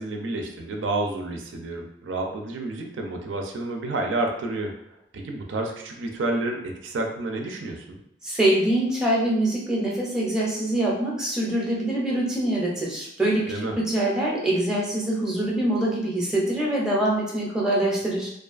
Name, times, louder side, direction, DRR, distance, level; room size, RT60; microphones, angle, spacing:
voice 1, 0.0-4.7 5.1-8.0 13.5-13.7, right 2 dB, 85° right, 2 dB, 0.4 m, -30 dB
voice 2, 8.2-18.3, right 1 dB, 5° right, -4 dB, 0.5 m, -24 dB
2.4 x 2.3 x 2.4 m, 0.77 s
head